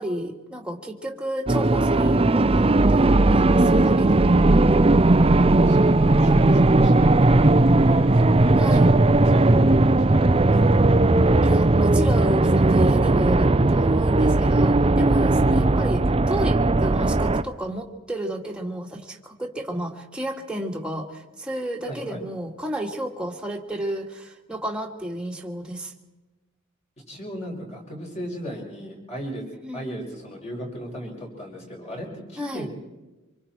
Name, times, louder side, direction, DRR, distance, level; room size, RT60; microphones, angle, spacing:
voice 1, 0.0-4.3 8.6-8.9 11.4-25.9 29.6-29.9 32.4-32.7, right 1 dB, 5° right, 0 dB, 2.0 m, -32 dB
sound 1, 1.5-17.4, right 2 dB, 25° right, 0.6 m, -17 dB
voice 2, 5.2-10.8 15.4-15.8 21.9-22.2 27.1-29.4 29.7-32.7, equal, 30° left, 0 dB, 6.1 m, -37 dB
26.5 x 24.0 x 4.5 m, 1.1 s
head